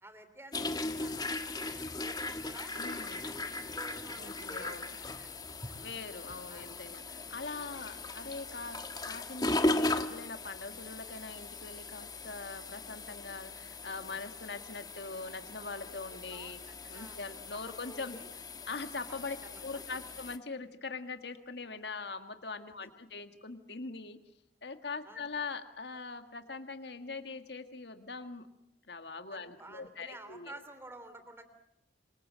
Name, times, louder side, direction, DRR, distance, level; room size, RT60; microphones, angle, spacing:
voice 1, 0.0-2.8 3.2-5.8 6.5-6.7 7.6-7.8 14.1-14.2 16.1-16.6 16.9-17.2 17.5-18.3 19.1-19.8 25.0-25.3 29.3-31.4, right 1 dB, 15° right, 10 dB, 3.2 m, -52 dB
sound 1, 0.5-20.4, left 2 dB, 20° left, 1.4 m, -38 dB
voice 2, 2.8-3.3 4.2-5.0 5.8-8.8 9.0-16.6 16.9-18.2 18.7-19.4 19.6-24.2 24.6-28.5 28.9-30.6, left 4 dB, 65° left, 8 dB, 1.9 m, -42 dB
27.5 x 25.0 x 7.6 m, 0.77 s
head